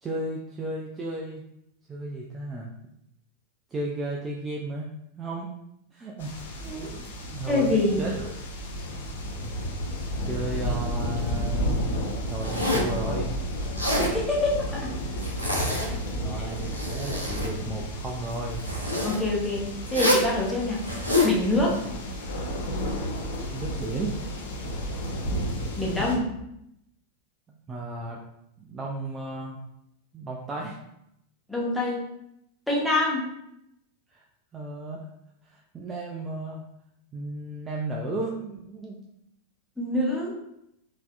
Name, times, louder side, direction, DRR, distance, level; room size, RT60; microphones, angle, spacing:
voice 1, 0.0-1.4 1.9-2.7 3.7-4.9 5.2-5.5 5.9-8.3 9.4-9.5 10.2-11.7 12.3-13.3 15.8-18.6 21.7-21.8 23.5-24.2 26.0-26.1 27.5-28.2 28.6-29.6 30.1-30.8 34.1-34.2 34.5-35.1 35.4-36.6 37.1-39.0, right 2 dB, 20° right, -2 dB, 0.4 m, -34 dB
sound 1, 6.2-26.2, equal, 60° left, 0.6 m, -32 dB
voice 2, 7.5-8.0 14.0-14.8 19.0-19.6 19.9-20.8 21.2-21.8 25.8-26.2 31.5-32.1 32.7-33.3 39.8-40.3, left 2 dB, ahead, -6 dB, 1.0 m, -25 dB
Zipper (clothing), 12.4-13.0 13.6-14.1 15.2-16.1 16.5-17.5 18.6-19.2 19.9-20.3 20.8-21.3, left 2 dB, 90° right, 0.7 m, -26 dB
4.0 x 2.7 x 2.4 m, 0.80 s
figure-of-eight pair, 90°, 0 cm